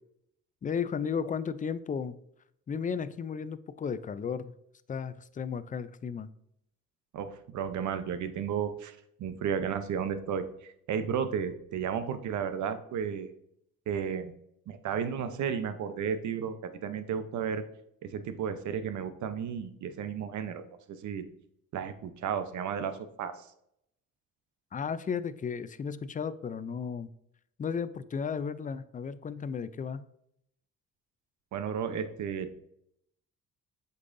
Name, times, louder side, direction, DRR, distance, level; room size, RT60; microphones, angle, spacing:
voice 1, 0.6-2.2 2.7-4.5 4.9-6.3 24.7-27.1 27.6-30.1, left 6 dB, 25° left, 14 dB, 0.4 m, -34 dB
voice 2, 7.1-10.5 10.9-13.3 13.9-14.3 14.7-17.6 18.0-21.3 21.7-23.5 31.5-32.5, right 7 dB, 70° right, 10 dB, 0.8 m, -33 dB
8.2 x 5.5 x 2.6 m, 0.74 s
cardioid pair, 90°, 30 cm